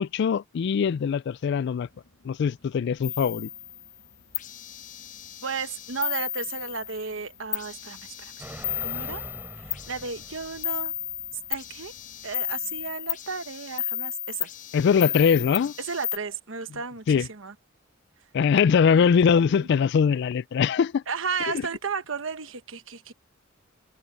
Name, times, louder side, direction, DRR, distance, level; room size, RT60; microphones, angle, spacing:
voice 1, 0.0-1.9 2.2-3.5 14.7-15.7 17.1-17.3 18.3-21.0 21.4-21.5, left 6 dB, 55° left, 0.3 m, -22 dB
sound 1, 1.8-13.0, left 2 dB, 75° left, 2.3 m, -61 dB
sound 2, 3.0-3.9 4.3-7.2 7.5-16.2, left 11 dB, 40° left, 0.8 m, -34 dB
voice 2, 5.4-8.3 8.8-9.2 9.6-10.9 11.5-11.9 12.2-14.5 15.8-17.5 18.9-19.7 21.1-23.1, right 5 dB, 70° right, 1.2 m, -34 dB
sound 3, 8.4-11.3 11.6-11.7, right 1 dB, 10° right, 3.2 m, -43 dB
head